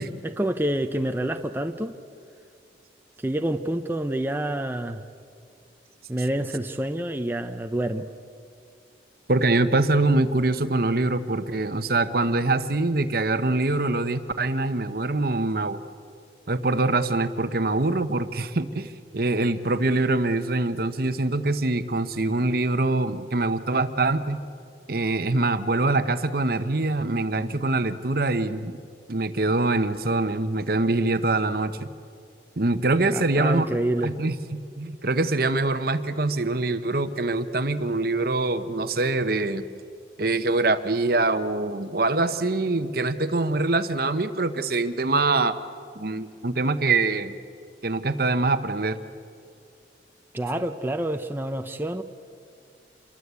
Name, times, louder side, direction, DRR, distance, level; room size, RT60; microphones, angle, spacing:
voice 1, 0.2-2.0 3.2-5.0 6.1-8.1 33.1-34.1 50.3-52.0, right 1 dB, 10° right, 6 dB, 0.7 m, -27 dB
voice 2, 9.3-15.8 16.5-24.4 24.9-28.8 29.1-31.9 32.6-33.7 34.0-39.6 40.2-45.6 45.9-47.4 47.8-49.0, right 2 dB, 55° right, 11 dB, 1.0 m, -24 dB
27.5 x 22.5 x 8.3 m, 2.4 s
head